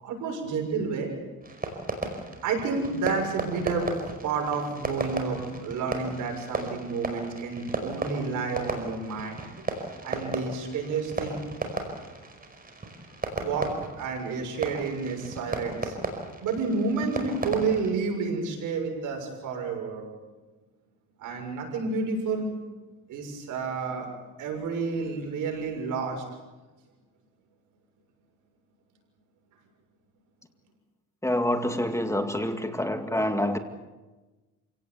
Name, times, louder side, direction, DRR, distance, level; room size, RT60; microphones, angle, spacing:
voice 1, 0.0-1.1 2.4-3.9 4.2-9.4 10.0-11.4 13.4-13.7 14.0-16.0 16.4-20.1 21.2-22.5 23.1-24.1 24.4-26.2, right 4 dB, 80° right, 2 dB, 6.6 m, -30 dB
Fireworks, 1.4-17.9, right 3 dB, 30° right, 5.1 m, -35 dB
voice 2, 31.2-33.6, left 1 dB, 10° left, 7 dB, 2.2 m, -27 dB
27.5 x 17.5 x 8.2 m, 1.2 s
cardioid pair, 90°, 30 cm